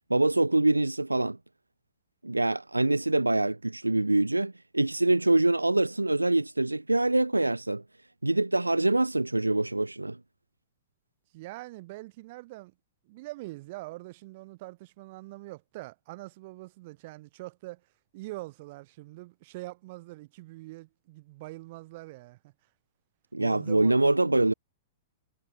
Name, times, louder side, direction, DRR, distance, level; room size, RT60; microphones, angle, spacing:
voice 1, 0.1-1.4 2.2-7.8 8.2-10.2 23.3-24.5, right 2 dB, 85° right, 1.4 m, -25 dB
voice 2, 11.3-12.7 13.0-17.8 18.1-22.5 23.4-24.1, right 20 dB, 45° right, 4.2 m, -43 dB
figure-of-eight pair, 105°, 0 cm